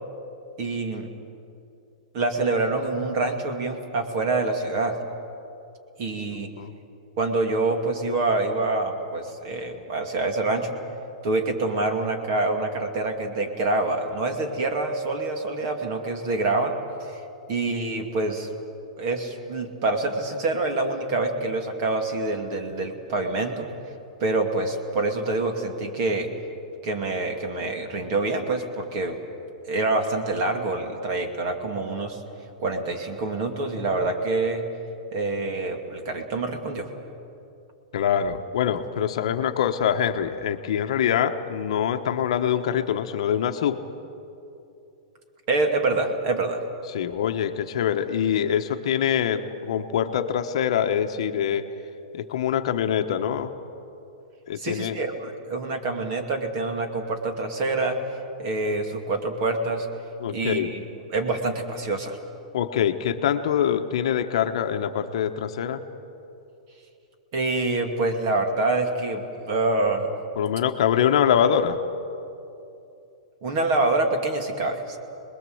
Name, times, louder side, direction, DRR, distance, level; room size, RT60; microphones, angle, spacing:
voice 1, 0.6-1.1 2.1-5.0 6.0-6.5 7.2-10.7 11.2-16.7 17.0-17.2 17.5-18.5 19.0-23.7 24.2-26.3 26.8-29.2 29.7-32.2 32.6-34.6 35.1-36.9 45.5-46.6 54.6-58.0 58.4-59.9 60.3-60.8 61.1-62.2 67.3-70.1 73.4-75.0, right 2 dB, 35° right, 4 dB, 2.3 m, -26 dB
voice 2, 37.9-43.8 46.9-51.7 52.1-53.5 54.5-55.0 60.2-60.7 62.5-65.8 70.4-71.8, left 9 dB, 50° left, 7 dB, 1.1 m, -24 dB
27.0 x 21.0 x 7.9 m, 2.8 s
supercardioid pair, 175°, 4 cm